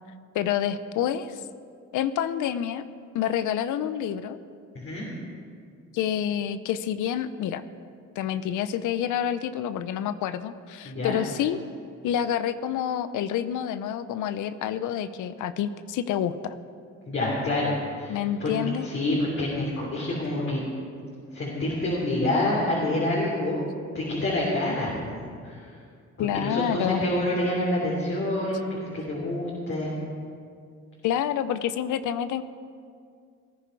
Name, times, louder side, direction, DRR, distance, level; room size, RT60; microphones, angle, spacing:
voice 1, 0.3-1.4 1.9-2.8 3.1-4.4 5.9-7.6 8.2-11.6 12.0-16.5 18.1-18.9 26.2-27.0 31.0-32.4, left 10 dB, 80° left, 13 dB, 0.7 m, -28 dB
voice 2, 4.7-5.1 10.8-11.2 17.1-18.5 18.8-20.6 21.3-23.6 23.9-25.6 26.2-30.0, left 1 dB, 45° left, -5 dB, 3.2 m, -27 dB
18.0 x 10.0 x 4.6 m, 2.2 s
cardioid pair, 90°, 30 cm